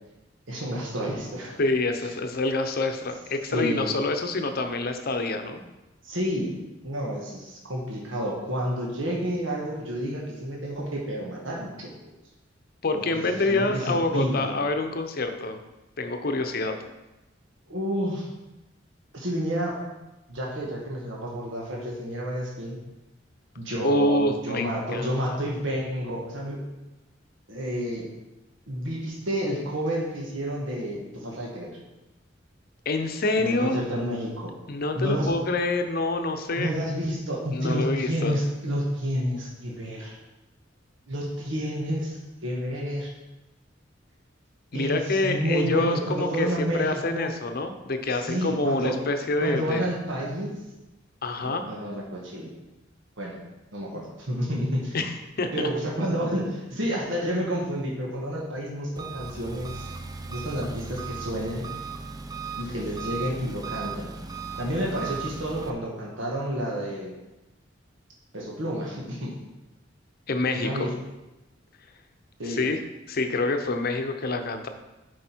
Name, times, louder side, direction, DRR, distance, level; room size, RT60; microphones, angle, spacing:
voice 1, 0.5-1.6 3.5-3.9 6.0-6.6 6.8-11.9 12.9-14.5 17.7-18.3 19.1-19.8 20.3-22.8 23.6-26.6 27.5-28.1 28.7-31.8 33.4-34.5 34.9-35.3 36.6-40.1 41.1-43.1 44.7-46.9 47.1-47.3 48.2-49.0 49.4-50.5 51.4-52.5 53.2-53.4 53.7-55.0 55.5-59.8 60.3-61.6 62.6-64.1 64.6-67.1 68.3-69.3 70.5-70.9 72.4-72.6, equal, 80° right, -2 dB, 1.4 m, -30 dB
voice 2, 1.6-5.6 12.8-15.6 16.0-16.7 23.8-25.1 32.9-33.9 34.7-36.7 37.5-38.4 44.7-49.9 51.2-51.6 54.9-55.7 70.3-70.9 72.4-72.8 73.1-74.7, left 2 dB, 50° left, 6 dB, 0.7 m, -26 dB
Engine, 59.0-65.7, right 5 dB, 20° right, 0.4 m, -37 dB
7.8 x 5.0 x 4.5 m, 1.0 s
head